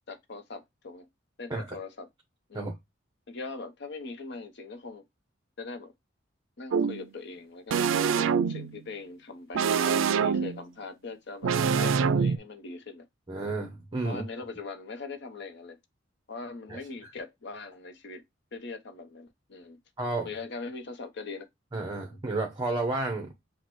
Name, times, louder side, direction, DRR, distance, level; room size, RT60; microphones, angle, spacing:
voice 1, 0.1-1.1 1.4-2.1 2.5-2.7 3.3-5.0 5.6-5.9 6.6-11.5 11.8-13.1 14.0-15.8 16.3-18.2 18.5-19.8 20.2-21.5 22.1-22.2, left 3 dB, 60° left, 0.8 m, -41 dB
sound 1, 6.7-7.0 7.7-8.8 9.5-10.6 11.4-12.4, right 6 dB, 75° right, 0.3 m, -25 dB
voice 2, 13.3-14.2 16.7-16.8 20.0-20.3 21.7-23.4, right 2 dB, 20° right, 0.8 m, -31 dB
6.0 x 2.2 x 3.0 m
head